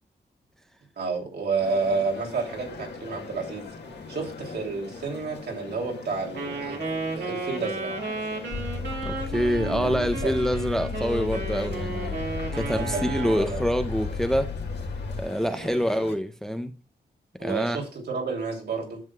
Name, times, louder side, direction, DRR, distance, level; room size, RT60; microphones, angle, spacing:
voice 1, 1.0-3.7 4.1-6.8 7.1-7.9 9.7-10.3 12.6-13.6 15.6-15.8 17.4-19.0, right 4 dB, 70° right, 2.9 m, -30 dB
sound 1, 1.6-16.1, left 4 dB, 80° left, 1.9 m, -42 dB
Wind instrument woodwind instrument, 6.3-13.5, right 3 dB, 85° right, 2.0 m, -33 dB
sound 2, 8.5-15.2, left 4 dB, 60° left, 2.6 m, -33 dB
voice 2, 9.0-12.2 12.5-14.5 15.2-16.7 17.4-17.8, equal, 5° left, 0.5 m, -26 dB
10.5 x 7.7 x 2.3 m
wide cardioid pair, 180°, 18 cm